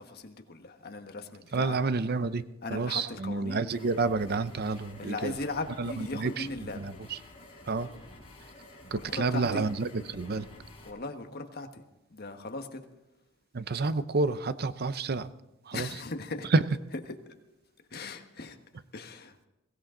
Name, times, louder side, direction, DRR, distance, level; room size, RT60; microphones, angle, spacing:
voice 1, 0.0-1.8 2.6-3.7 5.0-6.8 8.9-9.6 10.9-11.8 12.1-12.8 15.7-16.5 17.9-18.6 18.9-19.4, left 3 dB, 50° left, 1.4 m, -38 dB
voice 2, 1.5-2.4 2.7-5.4 5.8-7.2 7.7-7.9 8.9-10.5 13.5-15.3 15.6-15.9 16.4-16.6, right 3 dB, 50° right, 0.6 m, -29 dB
sound 1, 3.7-10.9, left 1 dB, 30° left, 5.4 m, -50 dB
22.0 x 16.5 x 3.9 m
head